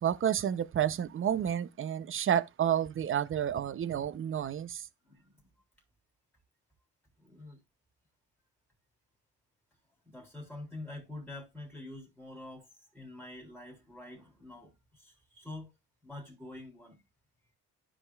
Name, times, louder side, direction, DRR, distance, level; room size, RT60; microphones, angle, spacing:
voice 1, 0.0-4.9, right 9 dB, 45° right, 0.7 m, -30 dB
voice 2, 5.0-5.4 7.2-7.6 10.1-12.7 12.9-15.7 16.0-17.0, left 2 dB, ahead, 3.6 m, -46 dB
13.0 x 5.1 x 2.4 m
cardioid pair, 90°, 30 cm